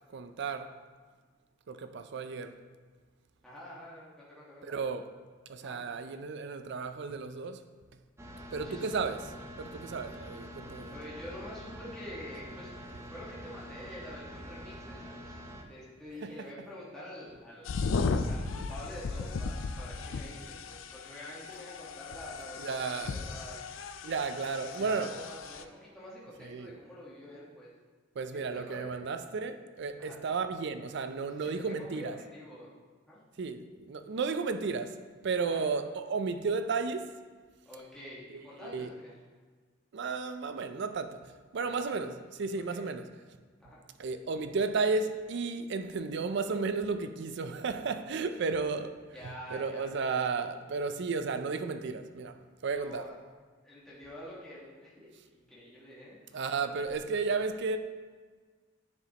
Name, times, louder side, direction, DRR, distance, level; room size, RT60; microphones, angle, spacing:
voice 1, 0.1-0.7 1.7-2.5 4.6-5.1 5.5-7.6 8.5-9.3 9.6-10.9 16.2-16.5 22.6-23.2 24.0-25.1 26.4-26.8 28.2-32.2 33.4-35.0 35.2-37.1 38.3-38.9 39.9-43.0 44.0-49.0 49.2-52.4 52.6-53.1 56.3-57.8, right 4 dB, 60° right, 0.4 m, -33 dB
voice 2, 3.4-4.7 5.6-5.8 8.6-9.0 10.2-10.3 10.7-15.4 15.7-17.9 18.3-23.6 24.4-27.7 28.3-29.0 30.0-30.2 31.4-32.7 33.1-33.2 35.4-35.7 37.6-39.2 41.6-41.9 42.7-42.8 43.6-43.8 49.1-49.9 52.7-53.1 53.6-55.1 55.3-56.2, left 1 dB, 5° left, 1.3 m, -47 dB
sound 1, 8.2-15.6, equal, 15° right, 0.6 m, -46 dB
sound 2, 17.7-25.6, left 4 dB, 70° left, 0.4 m, -36 dB
9.5 x 5.0 x 2.9 m
head